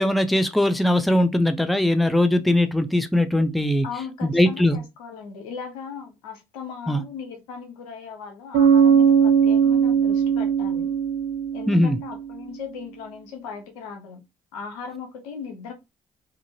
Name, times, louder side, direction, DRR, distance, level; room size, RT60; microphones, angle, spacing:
voice 1, 0.0-3.8 4.2-4.8 6.9-7.0 11.7-12.0, left 1 dB, ahead, 0.5 m, -20 dB
voice 2, 3.8-10.9 11.5-14.2 14.5-15.7, left 6 dB, 90° left, 0.7 m, -38 dB
Bass guitar, 8.5-12.2, right 7 dB, 75° right, 0.6 m, -19 dB
2.7 x 2.5 x 2.8 m
hypercardioid pair, 50°, 18 cm